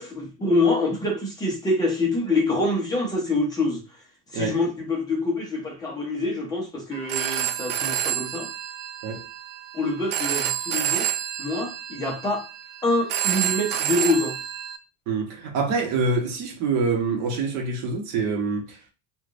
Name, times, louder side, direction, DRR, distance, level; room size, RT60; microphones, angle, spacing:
voice 1, 0.0-3.8 4.3-8.5 9.7-11.1 11.4-12.5 12.8-14.4, left 2 dB, 10° left, 0.8 m, -25 dB
Telephone, 6.9-14.8, right 11 dB, 85° right, 0.6 m, -29 dB
voice 2, 15.1-18.9, right 4 dB, 55° right, 1.0 m, -26 dB
3.3 x 2.4 x 2.5 m
cardioid pair, 175°, 35 cm